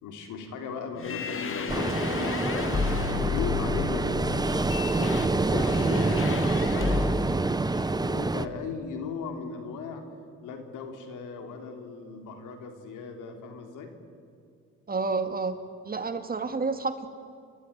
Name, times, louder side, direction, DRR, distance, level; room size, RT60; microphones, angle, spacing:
voice 1, 0.0-2.9 3.3-4.3 4.9-10.0 10.4-13.9, left 5 dB, 90° left, 5 dB, 3.4 m, -38 dB
sound 1, 1.0-7.4, left 5 dB, 45° left, 2.2 m, -32 dB
Ocean, 1.7-8.5, right 2 dB, 15° right, 0.8 m, -27 dB
voice 2, 14.9-15.6 15.8-17.1, right 4 dB, 30° right, 8 dB, 2.1 m, -29 dB
29.5 x 13.0 x 10.0 m, 2.3 s
cardioid pair, 90°, 30 cm